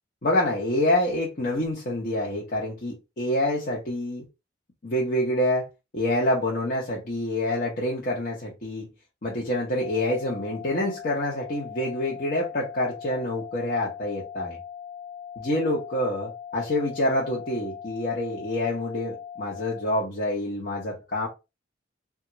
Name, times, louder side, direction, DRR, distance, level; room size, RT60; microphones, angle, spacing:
voice 1, 0.2-4.2 4.8-5.7 5.9-8.9 9.2-14.6 15.4-21.3, left 1 dB, 50° left, 0.9 m, -27 dB
sound 1, 9.8-19.8, left 8 dB, 70° left, 0.5 m, -40 dB
3.5 x 2.4 x 2.9 m
head